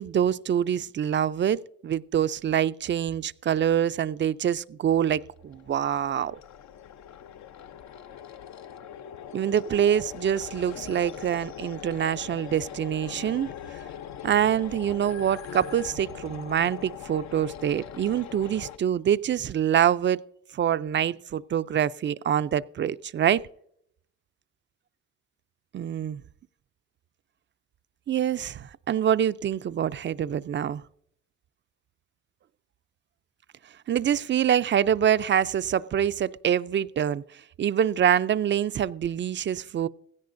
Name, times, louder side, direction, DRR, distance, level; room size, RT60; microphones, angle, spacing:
voice 1, 0.0-6.4 9.3-13.5 14.2-20.2 20.5-23.4 25.7-26.2 28.1-30.8 33.9-37.2 37.6-39.9, right 9 dB, 40° right, 0.4 m, -25 dB
sound 1, 5.2-18.8, left 9 dB, 65° left, 0.6 m, -41 dB
16.5 x 16.0 x 2.6 m
cardioid pair, 90°, 30 cm